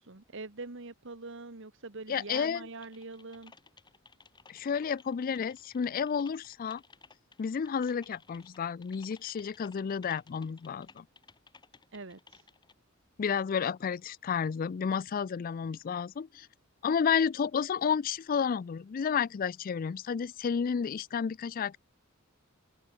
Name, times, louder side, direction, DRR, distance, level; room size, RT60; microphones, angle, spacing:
voice 1, 0.0-3.5 11.9-12.4, right 3 dB, 65° right, 1.8 m, -44 dB
voice 2, 2.1-2.7 4.5-6.8 7.4-11.0 13.2-16.5 16.8-21.8, left 6 dB, 45° left, 0.4 m, -31 dB
Typing, 2.8-12.7, left 4 dB, 20° left, 1.3 m, -58 dB
head